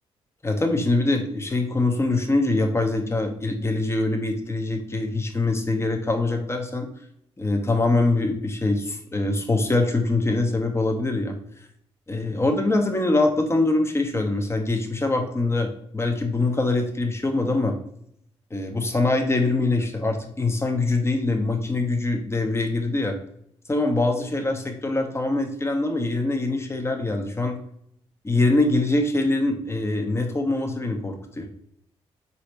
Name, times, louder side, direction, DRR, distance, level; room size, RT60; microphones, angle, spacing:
voice 1, 0.4-6.9 7.4-11.3 12.1-17.7 18.5-23.2 23.7-27.6 28.2-31.5, left 2 dB, 20° left, 4 dB, 0.8 m, -23 dB
4.1 x 2.8 x 3.2 m, 0.70 s
hypercardioid pair, 40°, 13 cm